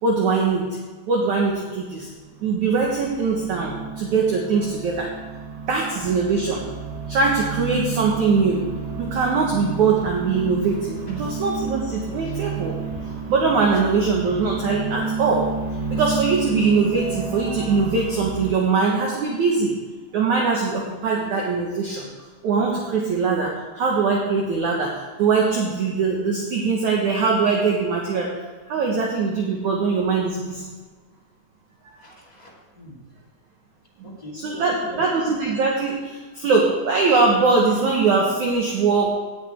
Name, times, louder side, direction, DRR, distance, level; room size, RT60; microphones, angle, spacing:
voice 1, 0.0-0.7 1.1-2.1 2.4-5.1 5.7-6.6 7.1-8.7 9.0-12.8 13.1-15.5 15.9-19.7 20.1-22.1 22.4-28.3 28.7-30.7 34.0-39.1, right 4 dB, 60° right, -2 dB, 2.1 m, -22 dB
sound 1, 2.0-18.5, right 4 dB, 80° right, 4.4 m, -31 dB
voice 2, 32.0-33.0 34.0-35.0, equal, 15° left, -5 dB, 1.5 m, -41 dB
18.0 x 8.4 x 3.6 m, 1.4 s
omnidirectional pair, 5.0 m